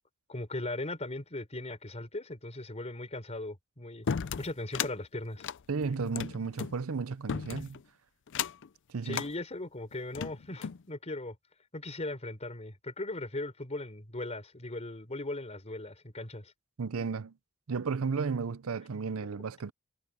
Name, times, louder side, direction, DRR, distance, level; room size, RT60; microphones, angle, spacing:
voice 1, 0.3-4.1 4.4-5.4 9.0-11.4 11.7-16.5, left 2 dB, 30° left, 4.0 m, -38 dB
sound 1, 4.1-4.9 5.4-6.7 7.3-7.8 8.3-8.7 9.1-9.3 9.9-10.8, left 7 dB, 60° left, 0.5 m, -35 dB
voice 2, 5.7-7.8 8.9-9.2 16.8-17.3 17.7-19.7, right 5 dB, 90° right, 0.6 m, -33 dB
head